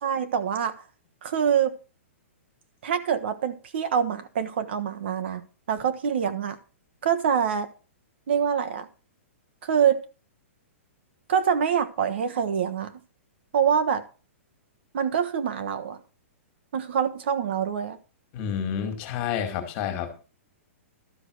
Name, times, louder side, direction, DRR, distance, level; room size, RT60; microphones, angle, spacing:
voice 1, 0.0-0.8 1.2-1.7 2.8-5.4 5.7-6.6 7.0-7.7 8.3-8.9 9.6-10.0 11.3-12.9 13.5-14.0 14.9-16.0 16.7-18.0, right 8 dB, 50° right, 1.2 m, -25 dB
voice 2, 18.3-20.2, left 8 dB, 25° left, 2.2 m, -29 dB
12.5 x 6.2 x 6.4 m
hypercardioid pair, 175°, 8 cm